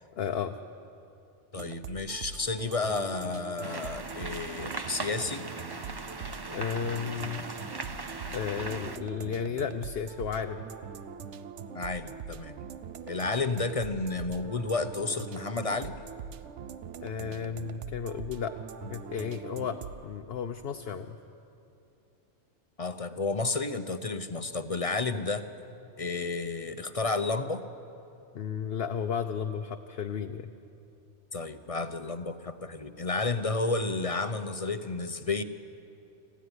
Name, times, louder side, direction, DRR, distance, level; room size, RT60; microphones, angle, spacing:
voice 1, 0.2-0.6 6.5-7.4 8.3-10.7 17.0-18.6 18.8-21.2 28.3-30.5, left 7 dB, 60° left, 6 dB, 0.9 m, -33 dB
voice 2, 1.5-5.4 11.7-12.6 13.1-16.0 22.8-25.4 26.0-27.6 31.3-35.4, left 3 dB, 35° left, 10 dB, 0.7 m, -31 dB
sound 1, 1.5-20.0, right 7 dB, 75° right, 1.1 m, -43 dB
sound 2, 3.6-9.0, right 3 dB, 25° right, 0.7 m, -39 dB
26.5 x 14.5 x 9.7 m, 2.8 s
omnidirectional pair, 1.2 m